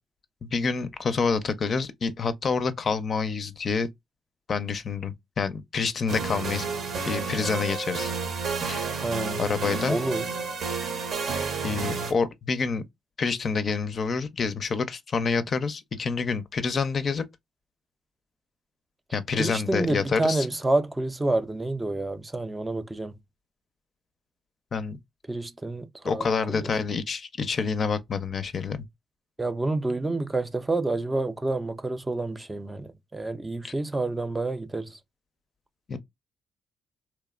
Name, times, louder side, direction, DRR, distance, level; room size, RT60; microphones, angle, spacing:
voice 1, 0.4-3.9 4.5-6.7 7.0-8.1 8.7-8.9 9.4-10.0 11.6-12.8 13.2-17.2 19.1-20.5 24.7-25.0 26.0-28.8 33.6-33.7 35.9-36.0, left 5 dB, 45° left, 0.4 m, -27 dB
sound 1, 6.1-12.1, right 4 dB, 65° right, 0.7 m, -30 dB
voice 2, 8.9-9.4 9.9-10.2 19.4-23.1 25.3-26.6 29.4-35.0, right 2 dB, 15° right, 0.4 m, -28 dB
2.9 x 2.0 x 2.2 m
cardioid pair, 90°, 0 cm